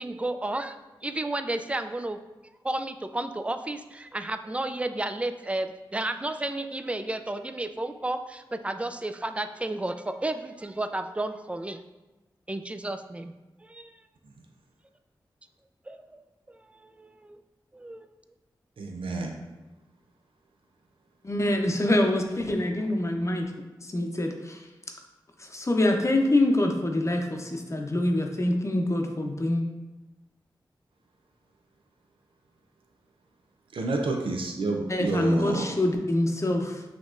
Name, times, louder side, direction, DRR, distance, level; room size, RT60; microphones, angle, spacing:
voice 1, 0.0-2.2 2.6-11.8 12.5-13.3 13.6-14.0 15.9-17.4 17.7-18.1, right 2 dB, 15° right, 9 dB, 0.3 m, -32 dB
voice 2, 18.8-19.3 33.7-35.7, right 3 dB, 90° right, 2 dB, 0.5 m, -29 dB
voice 3, 21.2-23.5 23.8-24.7 25.4-29.6 34.9-36.8, left 1 dB, 35° left, 3 dB, 0.7 m, -25 dB
6.0 x 2.9 x 2.5 m, 1.1 s
cardioid pair, 45°, 9 cm